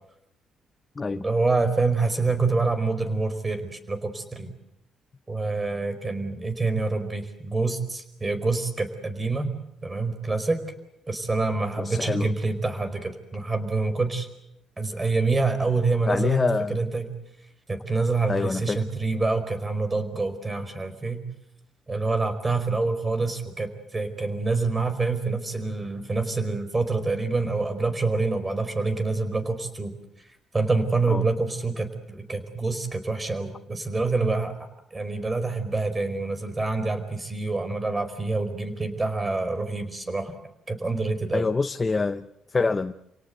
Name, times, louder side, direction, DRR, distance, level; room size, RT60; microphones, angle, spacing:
voice 1, 1.1-4.5 5.3-9.5 9.8-10.6 11.1-14.3 14.8-16.4 16.7-17.0 17.7-21.2 21.9-29.9 30.5-34.6 34.9-40.3 40.7-41.5, right 3 dB, 20° right, 10 dB, 4.7 m, -26 dB
voice 2, 11.8-12.3 16.1-16.8 18.3-18.8 31.1-31.2 41.3-42.9, left 4 dB, 25° left, 9 dB, 0.9 m, -25 dB
29.5 x 18.0 x 8.1 m, 0.83 s
cardioid pair, 90°, 0 cm